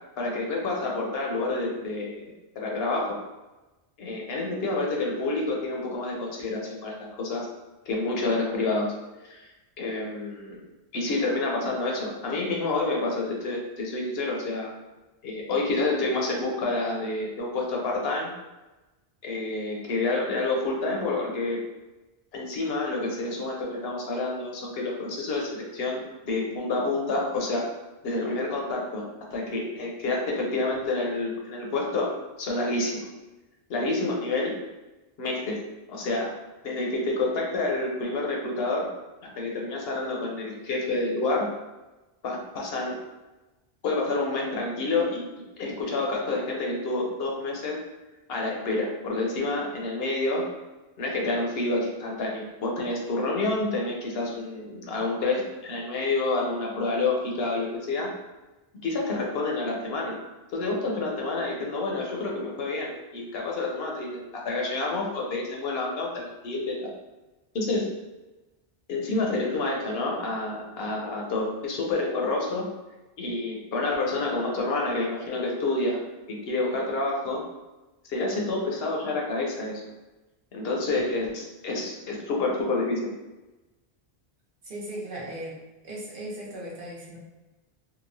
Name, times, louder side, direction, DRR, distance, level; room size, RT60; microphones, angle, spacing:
voice 1, 0.2-3.2 4.0-7.4 7.9-8.9 9.2-9.5 9.8-10.6 10.9-14.7 15.2-18.3 19.2-21.6 22.3-27.7 28.0-29.0 29.3-32.1 32.4-33.1 33.7-34.5 35.2-35.6 35.9-36.3 36.6-38.9 39.4-41.5 42.2-43.0 43.8-45.2 45.6-47.8 48.3-50.4 51.0-58.1 58.8-60.2 60.5-66.9 67.5-67.8 68.9-72.7 73.2-76.0 76.3-77.4 78.0-79.8 80.5-83.1, left 2 dB, 70° left, -1 dB, 0.8 m, -28 dB
voice 2, 84.6-85.6 85.8-87.2, right 1 dB, 60° right, -5 dB, 0.8 m, -37 dB
2.9 x 2.0 x 2.6 m, 1.1 s
omnidirectional pair, 1.1 m